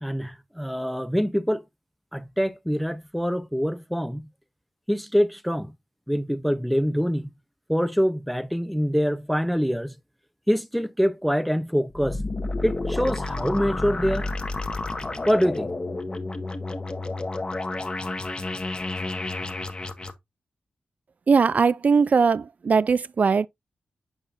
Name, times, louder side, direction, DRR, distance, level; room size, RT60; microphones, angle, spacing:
voice 1, 0.0-1.6 2.1-4.3 4.9-5.7 6.1-7.3 7.7-9.9 10.5-12.2 12.6-14.3 15.3-15.7, equal, ahead, 0.5 m, -25 dB
sound 1, 11.9-20.1, left 2 dB, 30° left, 1.1 m, -30 dB
voice 2, 21.3-23.5, right 5 dB, 50° right, 0.3 m, -20 dB
7.0 x 5.5 x 2.5 m
cardioid pair, 70°, 3 cm